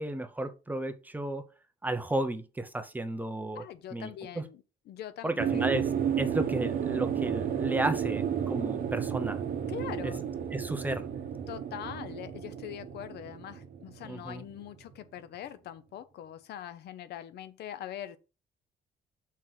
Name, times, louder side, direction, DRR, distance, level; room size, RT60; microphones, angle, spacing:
voice 1, 0.0-1.4 1.8-3.6 3.9-4.5 5.2-5.9 6.2-9.4 10.0-10.1 10.5-11.1 14.0-14.4, right 1 dB, 10° right, 0.7 m, -33 dB
voice 2, 3.5-5.9 9.7-10.3 11.5-18.2, left 11 dB, 85° left, 0.7 m, -42 dB
sound 1, 5.4-14.7 14.9-15.0, right 8 dB, 60° right, 0.9 m, -32 dB
5.9 x 4.6 x 4.1 m
cardioid pair, 140°, 17 cm